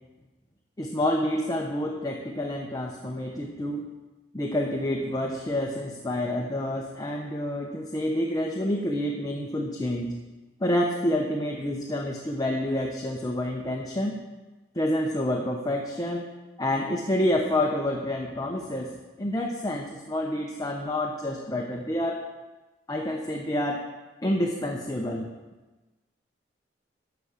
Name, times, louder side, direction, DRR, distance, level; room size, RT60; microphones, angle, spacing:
voice 1, 0.8-3.9 4.3-10.2 10.6-14.2 14.8-16.3 16.6-22.3 22.9-23.8 24.2-25.3, left 1 dB, 20° left, 0 dB, 0.8 m, -28 dB
12.0 x 4.9 x 7.1 m, 1.2 s
head